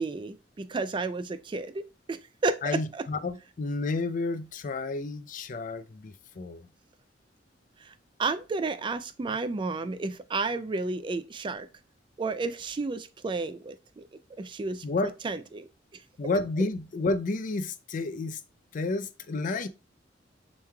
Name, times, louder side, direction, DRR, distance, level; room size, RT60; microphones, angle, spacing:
voice 1, 0.0-3.1 7.8-7.9 8.2-11.7 12.2-14.0 14.4-15.7, right 3 dB, 25° right, 0.3 m, -32 dB
voice 2, 2.6-6.6 14.8-15.1 16.2-18.4 18.7-19.7, left 3 dB, 45° left, 0.4 m, -31 dB
7.0 x 3.2 x 2.2 m
head